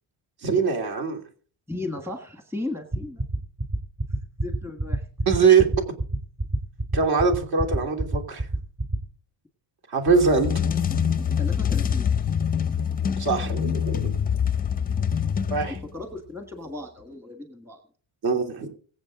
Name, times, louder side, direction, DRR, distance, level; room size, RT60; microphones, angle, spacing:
voice 1, 0.4-1.2 5.3-5.7 6.9-8.4 9.9-10.5 13.2-14.2 15.5-15.8 18.2-18.7, right 5 dB, 50° right, 3 dB, 3.1 m, -22 dB
voice 2, 1.7-3.2 4.4-5.0 11.4-12.1 15.7-17.8, left 2 dB, 5° right, 5 dB, 1.5 m, -35 dB
sound 1, 2.9-9.0, right 1 dB, 30° right, 2.5 m, -25 dB
sound 2, 10.1-16.0, left 7 dB, 20° left, 0.6 m, -25 dB
23.0 x 7.9 x 3.8 m, 0.43 s
cardioid pair, 175°, 47 cm